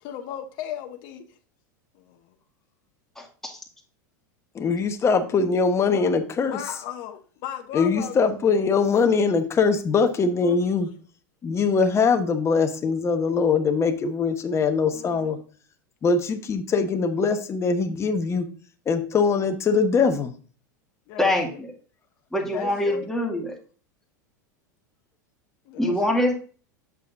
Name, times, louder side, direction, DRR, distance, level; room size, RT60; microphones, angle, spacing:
voice 1, 0.0-1.2 1.9-2.3 5.9-6.1 6.5-8.3 10.4-10.8 14.9-15.3 21.1-21.6 22.5-23.1 25.7-26.0 26.2-26.3, left 10 dB, 50° left, 6 dB, 0.8 m, -36 dB
voice 2, 3.2-3.6 21.2-21.7 22.3-23.5 25.8-26.3, left 1 dB, 5° left, -1 dB, 2.1 m, -24 dB
voice 3, 4.5-6.6 7.7-10.9 11.4-15.4 16.0-18.5 18.9-20.3, left 5 dB, 25° left, 7 dB, 1.1 m, -22 dB
8.1 x 7.0 x 2.6 m, 0.41 s
hypercardioid pair, 95°, 10 cm